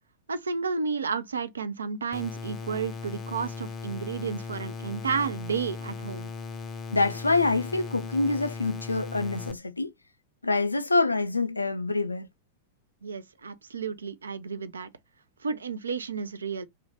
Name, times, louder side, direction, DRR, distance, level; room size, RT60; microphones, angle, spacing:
voice 1, 0.3-6.3 13.0-14.9 15.4-16.6, right 5 dB, 70° right, 0.3 m, -32 dB
sound 1, 2.1-9.5, left 4 dB, 25° left, 0.5 m, -38 dB
voice 2, 6.9-9.9 10.4-12.3, left 3 dB, 80° left, 0.3 m, -26 dB
2.5 x 2.1 x 2.8 m
figure-of-eight pair, 90°, 0 cm